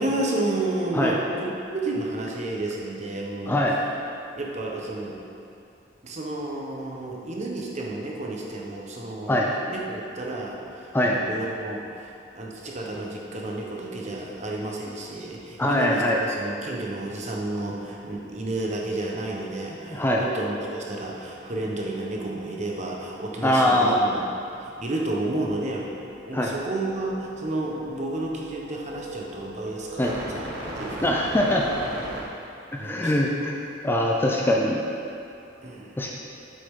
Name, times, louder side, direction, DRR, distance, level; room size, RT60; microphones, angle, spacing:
voice 1, 0.0-3.6 4.3-5.4 6.0-9.4 9.7-12.1 12.3-24.3 24.6-25.9 26.3-30.4 30.8-31.2 32.8-33.1 35.6-35.9, right 2 dB, 40° right, -2 dB, 1.0 m, -31 dB
voice 2, 3.5-3.8 9.3-9.5 10.9-11.2 15.6-16.2 19.9-20.2 23.4-24.0 26.3-26.5 30.0-30.1 31.0-31.7 32.7-33.6 33.8-34.8 36.0-36.1, left 1 dB, 10° left, -1 dB, 0.5 m, -22 dB
sound 1, 18.2-18.5 18.8-32.2, right 1 dB, 60° right, 1.3 m, -40 dB
7.7 x 6.4 x 3.7 m, 2.5 s
head